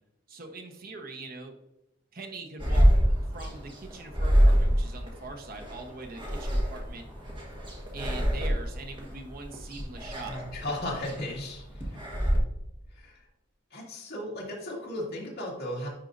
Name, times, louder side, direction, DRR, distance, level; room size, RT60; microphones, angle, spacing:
voice 1, 0.3-1.5 2.1-3.0 3.3-7.1 7.9-10.4, right 2 dB, 50° right, 4 dB, 1.1 m, -42 dB
sound 1, 2.6-12.4, equal, 25° right, 1.5 m, -26 dB
voice 2, 10.3-11.6 12.9-13.1 13.7-15.9, left 1 dB, 55° left, -4 dB, 2.1 m, -35 dB
10.5 x 4.5 x 2.6 m, 0.87 s
head